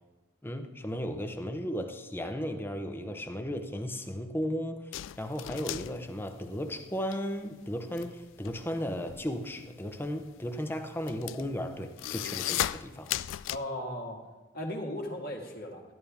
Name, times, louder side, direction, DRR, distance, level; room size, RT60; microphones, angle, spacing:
voice 1, 0.4-13.1, equal, 10° left, 0.8 m, -35 dB
sound 1, 4.9-7.2 7.5-13.6, left 13 dB, 85° left, 0.3 m, -36 dB
voice 2, 13.5-14.2 14.5-15.8, left 1 dB, 55° left, 1.7 m, -36 dB
13.0 x 11.0 x 3.5 m
head